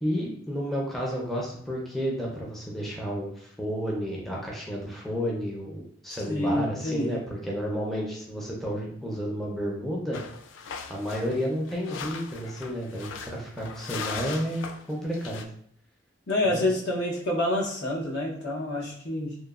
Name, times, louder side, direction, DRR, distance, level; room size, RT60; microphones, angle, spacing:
voice 1, 0.0-10.2 10.9-15.4 16.4-16.7, equal, ahead, -3 dB, 0.5 m, -31 dB
voice 2, 6.1-7.2 16.3-19.4, left 1 dB, 65° left, -3 dB, 0.8 m, -28 dB
sound 1, 10.1-15.4, left 5 dB, 90° left, 0.3 m, -39 dB
3.0 x 2.1 x 2.3 m, 0.65 s
head